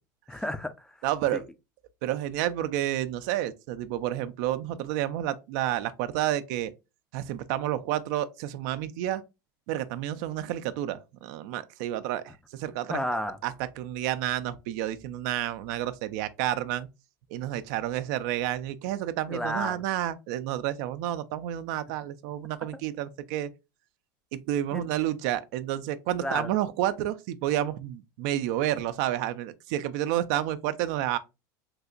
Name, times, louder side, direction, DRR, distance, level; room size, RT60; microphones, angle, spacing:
voice 1, 0.3-1.0 1.3-1.4 12.9-13.4 19.3-19.8 22.7-22.8 24.7-24.8 26.2-26.5, left 1 dB, 5° left, 0.4 m, -32 dB
voice 2, 1.0-1.4 2.0-6.7 7.1-9.2 9.7-13.0 13.4-16.9 17.3-23.5 24.3-31.2, right 12 dB, 65° right, 0.4 m, -30 dB
3.3 x 2.8 x 2.4 m
hypercardioid pair, 85°, 11 cm